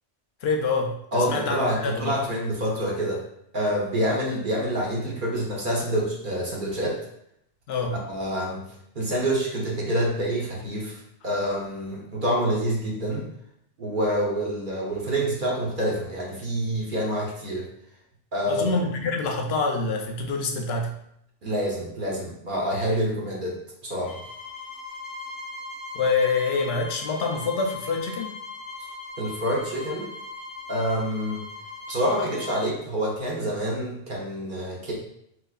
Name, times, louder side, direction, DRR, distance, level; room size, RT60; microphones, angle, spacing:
voice 1, 0.4-2.2 7.7-8.0 18.5-20.9 25.9-28.3, left 4 dB, 65° left, 3 dB, 0.7 m, -26 dB
voice 2, 1.1-3.2 3.5-7.0 8.1-8.7 8.9-13.3 13.8-17.7 18.3-18.6 21.4-23.6 23.8-24.2 29.2-30.1 30.7-31.4 31.9-34.9, equal, 50° right, -3 dB, 0.8 m, -27 dB
sound 1, 24.0-32.7, left 3 dB, 25° left, 0.5 m, -39 dB
3.9 x 2.9 x 2.4 m, 0.75 s
omnidirectional pair, 1.2 m